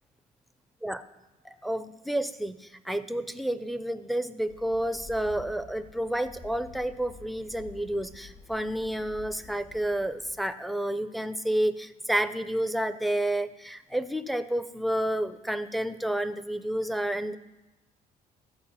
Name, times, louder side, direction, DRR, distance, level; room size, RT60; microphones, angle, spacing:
voice 1, 1.4-17.4, right 1 dB, ahead, 11 dB, 0.4 m, -30 dB
sound 1, 4.4-10.3, left 5 dB, 50° left, 1.6 m, -50 dB
13.5 x 4.6 x 5.6 m, 1.0 s
cardioid pair, 110°, 17 cm